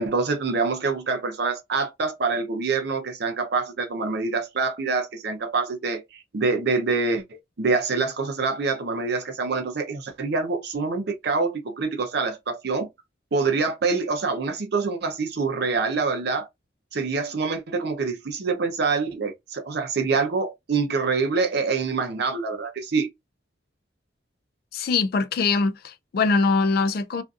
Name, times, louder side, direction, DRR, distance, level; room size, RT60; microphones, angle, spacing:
voice 1, 0.0-7.2 7.6-12.9 13.3-16.5 16.9-23.1, right 4 dB, 60° right, 0.6 m, -25 dB
voice 2, 24.7-27.2, left 4 dB, 55° left, 0.4 m, -22 dB
2.6 x 2.5 x 2.3 m
head